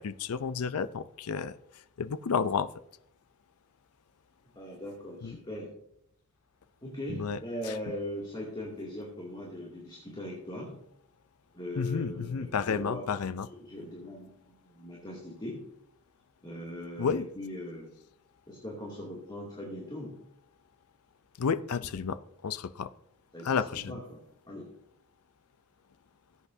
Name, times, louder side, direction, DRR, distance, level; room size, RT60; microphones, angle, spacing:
voice 1, 0.0-1.5 2.0-2.7 5.2-5.4 7.1-7.4 11.8-13.5 17.0-17.3 21.4-22.9 23.4-23.9, left 6 dB, 80° left, 14 dB, 0.5 m, -31 dB
voice 2, 4.6-5.7 6.8-10.7 11.5-13.1 13.4-15.6 16.4-17.9 18.5-20.2 23.3-24.7, left 1 dB, 20° left, -4 dB, 2.5 m, -40 dB
19.0 x 8.2 x 2.7 m, 0.72 s
head